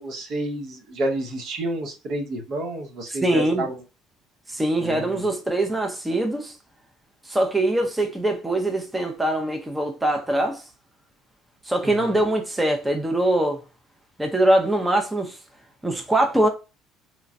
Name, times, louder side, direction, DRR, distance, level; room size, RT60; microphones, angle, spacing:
voice 1, 0.0-3.8 4.8-5.2 11.8-12.2, right 1 dB, 55° right, 0.8 m, -30 dB
voice 2, 3.2-3.7 4.5-6.5 7.3-10.6 11.7-13.6 14.2-15.4 15.8-16.5, right 1 dB, 10° right, 0.5 m, -22 dB
3.0 x 2.3 x 2.6 m
supercardioid pair, 95°, 0 cm